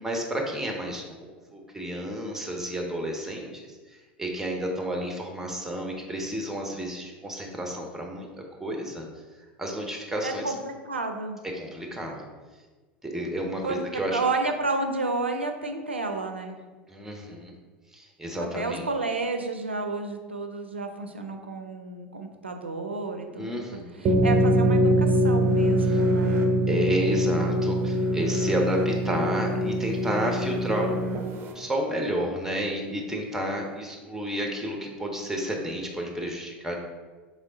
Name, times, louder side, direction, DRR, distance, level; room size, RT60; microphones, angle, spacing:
voice 1, 0.0-3.8 4.2-8.3 8.6-9.0 9.6-10.4 11.5-12.2 13.0-14.2 16.9-17.5 17.9-18.9 23.3-24.1 25.9-26.0 26.7-36.7, right 1 dB, 5° right, 1 dB, 0.9 m, -31 dB
voice 2, 10.2-11.4 13.6-16.6 18.5-23.7 24.0-26.5, right 3 dB, 85° right, 5 dB, 0.4 m, -31 dB
sound 1, 24.1-31.5, equal, 40° right, 0.5 m, -23 dB
3.6 x 3.1 x 3.8 m, 1.4 s
figure-of-eight pair, 80°, 6 cm